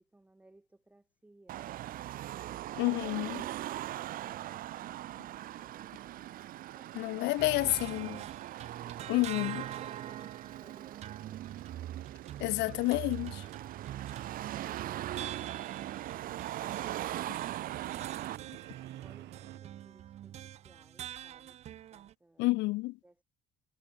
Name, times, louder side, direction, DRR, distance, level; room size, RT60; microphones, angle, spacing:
voice 1, 0.0-1.9 6.7-8.4 9.7-11.4 18.8-21.6 21.9-22.6 23.0-23.2, right 2 dB, 10° right, 5.3 m, -63 dB
Car passing by / Traffic noise roadway noise / Engine, 1.5-18.4, right 14 dB, 55° right, 1.1 m, -41 dB
voice 2, 2.8-3.4 7.0-7.6 7.9-8.1 9.1-9.6 12.4-13.4 22.4-22.9, left 21 dB, 90° left, 0.5 m, -29 dB
sound 1, 6.0-19.6, right 17 dB, 75° right, 3.2 m, -50 dB
sound 2, 7.4-22.1, right 11 dB, 40° right, 0.5 m, -45 dB
cardioid pair, 170°, 18 cm